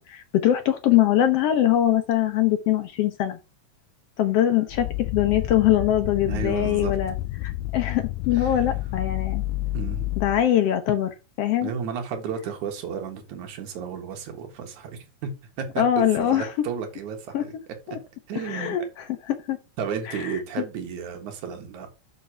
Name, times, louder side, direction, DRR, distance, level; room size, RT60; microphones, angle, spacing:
voice 1, 0.0-3.4 4.2-7.1 7.4-9.4 10.2-11.7 15.8-16.5 17.3-17.4 17.9-18.0 18.4-19.6 20.1-20.3, left 11 dB, 70° left, 1.6 m, -22 dB
sound 1, 4.7-10.5, left 17 dB, 90° left, 2.0 m, -30 dB
voice 2, 6.2-7.0 8.3-8.6 9.7-10.1 11.6-15.3 15.6-15.8 16.2-17.5 18.3-18.8 19.8-21.9, right 7 dB, 75° right, 3.0 m, -33 dB
6.5 x 5.9 x 5.7 m
omnidirectional pair, 3.4 m